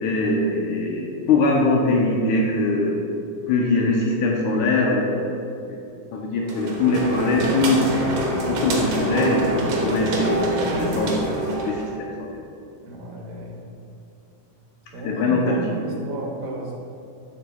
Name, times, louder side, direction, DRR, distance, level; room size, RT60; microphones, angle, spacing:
voice 1, 0.0-3.0 3.5-5.4 5.7-5.8 6.1-8.0 8.5-12.4 15.0-15.6, left 2 dB, 75° left, -2 dB, 1.9 m, -22 dB
sound 1, 6.5-12.0, right 1 dB, 65° right, 1.9 m, -25 dB
voice 2, 12.8-13.6 14.9-16.7, right 2 dB, 90° right, -1 dB, 2.8 m, -33 dB
13.5 x 4.9 x 2.3 m, 2.6 s
omnidirectional pair, 3.9 m